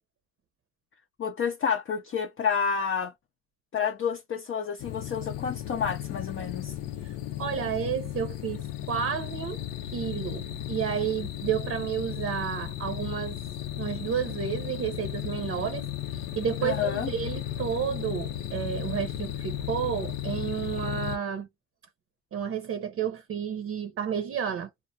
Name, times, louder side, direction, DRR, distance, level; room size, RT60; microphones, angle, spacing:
voice 1, 1.2-3.1 3.7-6.7 16.6-17.1, left 6 dB, 40° left, 0.5 m, -29 dB
sound 1, 4.8-21.2, left 12 dB, 90° left, 0.6 m, -35 dB
voice 2, 7.0-9.6 9.9-13.4 13.8-21.5 22.3-24.7, right 8 dB, 50° right, 0.6 m, -31 dB
2.3 x 2.2 x 2.6 m
cardioid pair, 90°, 30 cm